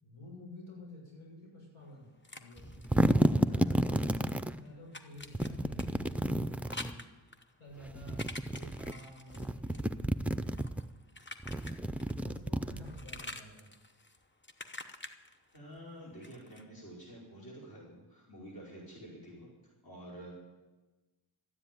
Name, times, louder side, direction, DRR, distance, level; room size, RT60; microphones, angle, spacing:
voice 1, 0.0-3.1 3.4-7.0 7.6-10.0 12.1-13.7, left 1 dB, 80° left, -3 dB, 6.9 m, -51 dB
sound 1, 1.8-4.0 4.2-12.4 12.6-16.6, left 2 dB, 25° left, 0.9 m, -48 dB
sound 2, 2.6-4.5 5.3-7.0 7.9-8.9 9.3-10.8 11.4-13.2, equal, 5° right, 0.4 m, -31 dB
voice 2, 3.5-3.8 15.5-19.5 19.8-20.3, right 1 dB, 45° left, -5 dB, 5.1 m, -49 dB
13.0 x 10.0 x 9.2 m, 1.2 s
wide cardioid pair, 100°, 48 cm